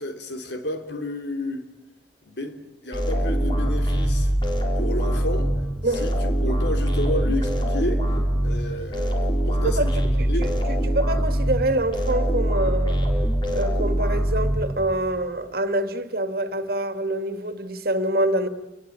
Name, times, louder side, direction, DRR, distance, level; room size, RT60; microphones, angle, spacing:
voice 1, 0.0-1.6 2.2-4.3 4.8-5.5 5.9-6.1 6.4-8.0 8.4-10.5, left 1 dB, 70° left, 3.5 m, -31 dB
sound 1, 2.9-15.1, right 1 dB, 25° left, 4.4 m, -23 dB
voice 2, 9.6-9.9 10.2-13.1 13.5-18.5, right 1 dB, 55° right, 2.1 m, -26 dB
29.5 x 21.5 x 8.9 m
head